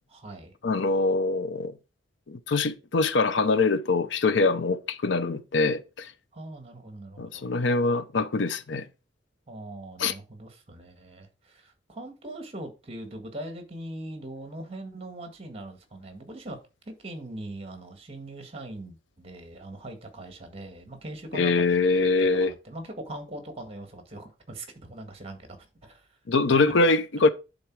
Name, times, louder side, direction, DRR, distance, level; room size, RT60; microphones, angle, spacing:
voice 1, 0.1-0.5 6.3-7.4 9.5-26.1, right 1 dB, 30° right, 1.7 m, -41 dB
voice 2, 0.6-1.7 2.3-6.1 7.2-8.9 10.0-10.1 21.3-22.5 26.3-27.3, left 3 dB, 70° left, 0.6 m, -24 dB
10.0 x 3.9 x 4.7 m
head